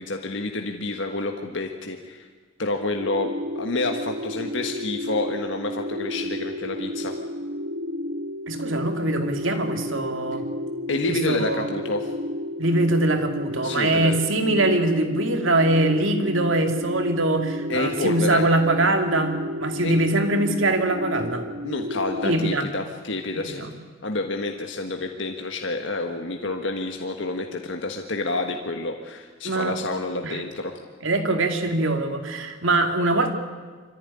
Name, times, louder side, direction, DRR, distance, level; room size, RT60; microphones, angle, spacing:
voice 1, 0.0-2.3 2.6-7.1 10.9-12.1 13.6-14.1 17.7-18.5 19.8-20.0 21.6-23.6 24.0-30.7, left 2 dB, 65° left, 3 dB, 1.6 m, -29 dB
sound 1, 3.0-22.4, left 1 dB, 55° right, 1.6 m, -32 dB
voice 2, 8.5-10.4 11.1-11.7 12.6-21.4 22.2-22.7 23.3-23.7 29.4-29.7 30.2-30.4 31.0-33.3, right 2 dB, 75° right, 5 dB, 2.5 m, -23 dB
25.5 x 15.0 x 9.9 m, 1.5 s
head